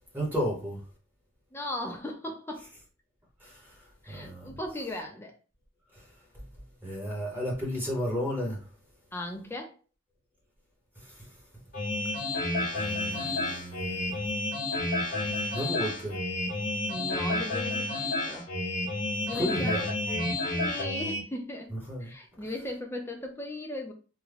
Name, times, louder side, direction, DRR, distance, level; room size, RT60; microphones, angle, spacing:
voice 1, 0.1-0.8 3.4-4.6 5.9-6.1 6.3-6.4 6.8-8.7 11.0-11.6 12.7-14.2 15.5-16.2 19.3-19.8 21.7-22.1, equal, 10° right, 1.0 m, -34 dB
voice 2, 1.5-2.7 4.0-5.3 9.1-9.7 16.9-18.5 19.2-19.8 20.5-21.7 22.0-23.9, left 1 dB, 10° left, 0.6 m, -37 dB
sound 1, 11.7-21.2, left 2 dB, 45° left, 0.8 m, -30 dB
3.5 x 2.2 x 3.3 m
head